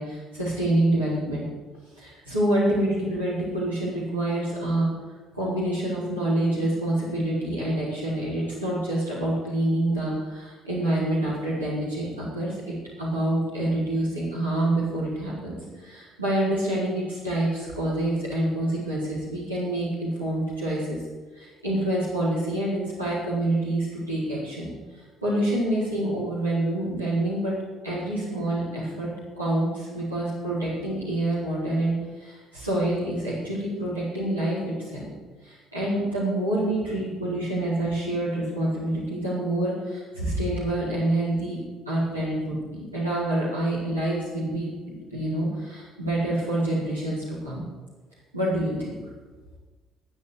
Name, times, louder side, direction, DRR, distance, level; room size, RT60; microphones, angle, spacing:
voice 1, 0.0-1.4 1.9-4.9 5.3-12.6 13.0-21.0 21.3-27.5 27.8-29.1 29.3-35.1 35.4-41.6 41.8-47.6 48.3-49.1, right 1 dB, 85° right, -11 dB, 4.8 m, -27 dB
14.0 x 9.6 x 8.4 m, 1.3 s
figure-of-eight pair, 50°, 0 cm